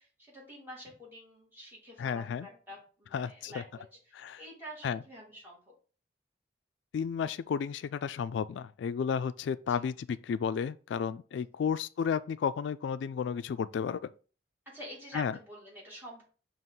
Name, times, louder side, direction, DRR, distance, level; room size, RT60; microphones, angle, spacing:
voice 1, 0.0-5.7 11.6-11.7 14.7-16.2, equal, 10° right, 2.3 m, -48 dB
voice 2, 2.0-2.5 3.1-3.6 4.1-4.4 4.8-5.0 6.9-14.1 15.1-15.4, left 7 dB, 80° left, 0.3 m, -32 dB
5.8 x 2.9 x 5.5 m
head